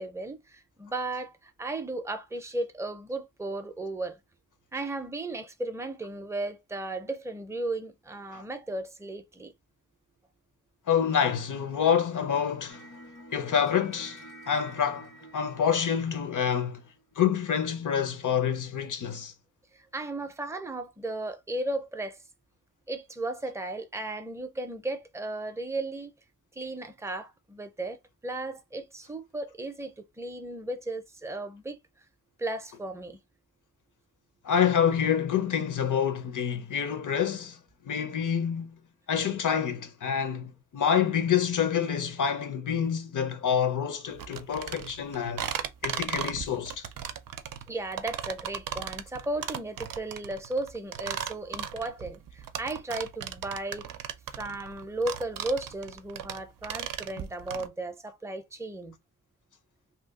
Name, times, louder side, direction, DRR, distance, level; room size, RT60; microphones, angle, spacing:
voice 1, 0.0-4.2 4.7-9.5 19.7-22.2 22.9-26.1 26.6-28.0 28.2-31.8 32.4-33.2 47.7-53.9 54.3-59.0, right 2 dB, 10° right, 0.4 m, -35 dB
voice 2, 10.9-12.9 13.3-16.8 17.2-19.3 34.4-37.6 37.8-38.8 39.1-45.4 45.8-46.8, left 8 dB, 65° left, 0.7 m, -27 dB
sound 1, 12.7-17.0, right 1 dB, 85° left, 1.4 m, -49 dB
sound 2, 44.2-57.7, right 9 dB, 85° right, 0.5 m, -36 dB
2.8 x 2.2 x 3.6 m
wide cardioid pair, 130°, 32 cm